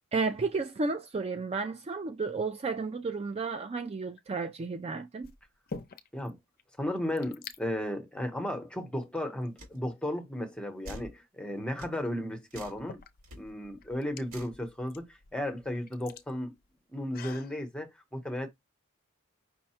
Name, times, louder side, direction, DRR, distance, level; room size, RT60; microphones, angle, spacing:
voice 1, 0.1-5.3, right 4 dB, 30° right, 0.3 m, -32 dB
sound 1, 4.0-4.4 5.2-6.3 6.6-6.7 6.9-7.6 8.4-8.5 9.2-10.0 11.7-11.8 12.5-17.5, left 4 dB, 45° left, 0.5 m, -47 dB
voice 2, 6.8-13.0 13.4-16.5 16.9-18.5, left 1 dB, 5° left, 0.9 m, -34 dB
sound 2, 9.6-9.8 10.8-11.1 11.8-12.0 12.5-12.8 13.2-13.4 14.3-14.6, equal, 85° right, 2.1 m, -45 dB
5.5 x 2.2 x 4.2 m
head